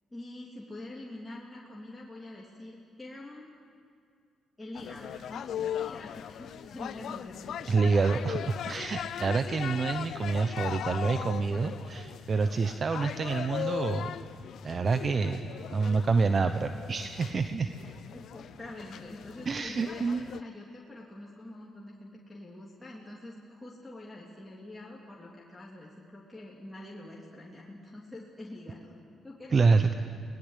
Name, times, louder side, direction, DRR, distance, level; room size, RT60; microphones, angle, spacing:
voice 1, 0.1-3.5 4.6-7.9 18.1-29.0 29.2-29.9, left 1 dB, 10° left, -4 dB, 3.3 m, -45 dB
sound 1, 4.7-20.4, left 10 dB, 70° left, 0.5 m, -39 dB
voice 2, 7.7-14.1 14.6-15.4 15.7-17.7 19.5-20.2 29.5-30.0, right 4 dB, 40° right, 8 dB, 0.9 m, -27 dB
23.5 x 19.5 x 8.4 m, 2.2 s
cardioid pair, 90°, 0 cm